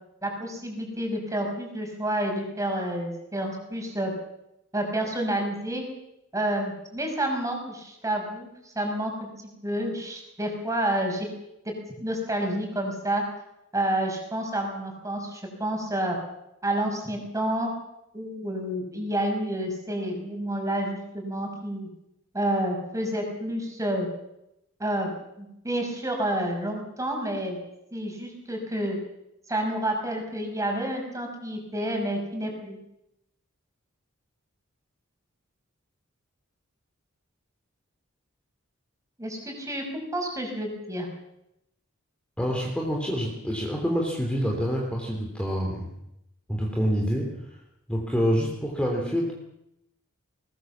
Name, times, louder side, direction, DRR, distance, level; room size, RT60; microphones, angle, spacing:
voice 1, 0.2-4.1 4.7-5.8 6.3-8.5 8.7-9.1 9.6-11.3 12.0-13.2 13.7-16.2 16.6-17.7 18.1-21.9 22.3-24.1 24.8-25.1 25.4-27.6 27.9-29.0 29.5-32.8 39.2-41.1, right 1 dB, 15° right, 2 dB, 6.1 m, -29 dB
voice 2, 42.4-45.9 46.5-47.4 47.9-49.3, equal, 5° left, -1 dB, 3.1 m, -27 dB
21.0 x 20.5 x 7.4 m, 0.84 s
head